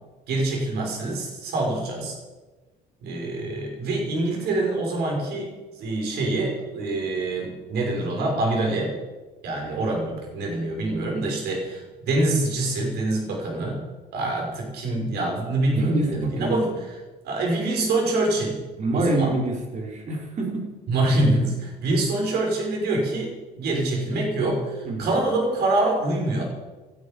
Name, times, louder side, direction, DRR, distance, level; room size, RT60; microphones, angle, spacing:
voice 1, 0.3-2.2 3.0-5.5 5.8-9.0 9.4-13.8 14.1-16.7 17.2-18.6 18.9-19.3 20.9-26.4, right 2 dB, 75° right, 0 dB, 6.1 m, -25 dB
voice 2, 15.8-16.6 18.8-20.6 24.8-25.2, right 2 dB, 45° right, 0 dB, 4.6 m, -26 dB
18.0 x 12.5 x 5.4 m, 1.2 s
cardioid pair, 110°, 17 cm